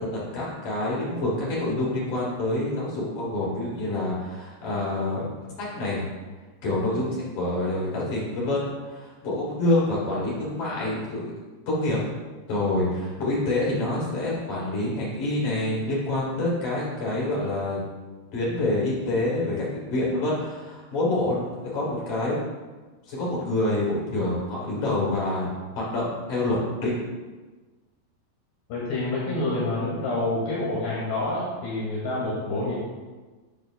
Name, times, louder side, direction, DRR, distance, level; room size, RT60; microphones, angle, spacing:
voice 1, 0.1-5.3 5.6-6.1 6.6-11.2 11.7-12.0 12.5-17.8 18.3-22.4 23.1-25.5 25.8-26.9, left 2 dB, 45° left, -6 dB, 4.1 m, -27 dB
voice 2, 28.7-32.7, left 2 dB, 65° left, -7 dB, 3.9 m, -27 dB
10.5 x 10.5 x 2.2 m, 1.3 s
omnidirectional pair, 5.4 m